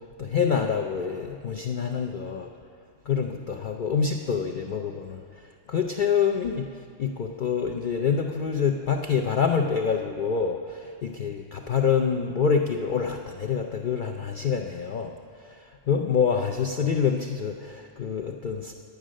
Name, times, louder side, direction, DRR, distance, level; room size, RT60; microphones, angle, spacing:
voice 1, 0.0-2.5 3.1-6.7 7.0-15.1 15.4-18.7, left 6 dB, 60° left, 3 dB, 0.5 m, -26 dB
9.9 x 9.2 x 6.3 m, 2.2 s
omnidirectional pair, 1.3 m